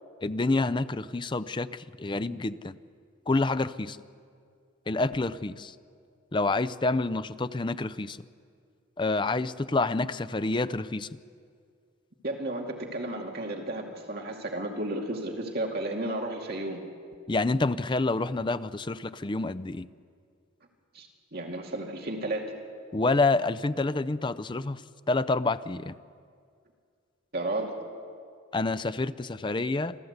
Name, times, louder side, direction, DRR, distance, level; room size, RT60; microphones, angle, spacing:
voice 1, 0.2-2.8 3.3-4.0 4.9-5.7 6.3-8.2 9.0-11.1 17.3-19.9 22.9-24.8 25.1-26.0 28.5-30.0, left 3 dB, 25° left, 14 dB, 0.5 m, -28 dB
voice 2, 12.2-16.8 20.9-22.5 27.3-27.8, right 1 dB, 50° right, 1 dB, 2.4 m, -33 dB
27.5 x 14.0 x 8.1 m, 2.2 s
head